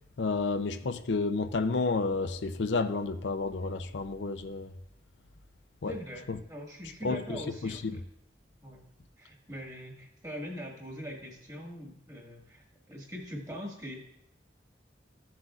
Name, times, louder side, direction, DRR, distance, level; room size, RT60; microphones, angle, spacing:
voice 1, 0.2-4.7 5.8-5.9 6.3-6.4 7.0-7.9, left 3 dB, 75° left, 0.6 m, -31 dB
voice 2, 5.9-8.0 8.6-8.8 9.2-14.0, equal, 20° right, 1.7 m, -42 dB
14.5 x 7.6 x 2.4 m
head